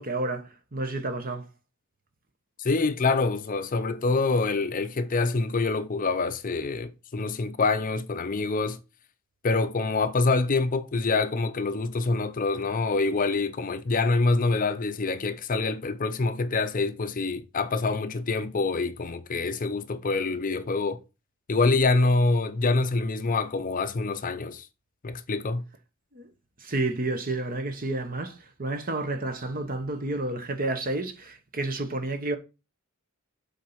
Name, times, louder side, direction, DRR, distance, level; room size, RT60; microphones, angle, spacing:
voice 1, 0.0-1.4 26.1-26.3 26.6-32.4, right 2 dB, 40° right, 1.2 m, -30 dB
voice 2, 2.6-8.8 9.4-21.0 21.5-24.7 25.0-25.6, left 3 dB, 40° left, 0.6 m, -26 dB
7.5 x 4.0 x 5.7 m
head